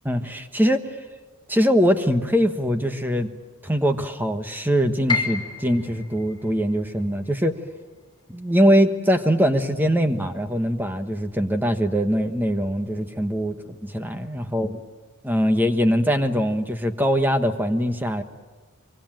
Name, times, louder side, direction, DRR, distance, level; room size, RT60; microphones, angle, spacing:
voice 1, 0.0-1.0 1.5-3.3 3.6-7.5 8.3-14.8 15.2-18.2, equal, 10° right, 8 dB, 1.3 m, -22 dB
Piano, 5.1-11.0 11.4-12.5 12.9-13.0 13.7-14.1, left 5 dB, 20° left, 2.8 m, -34 dB
24.5 x 24.0 x 9.1 m, 1.4 s
head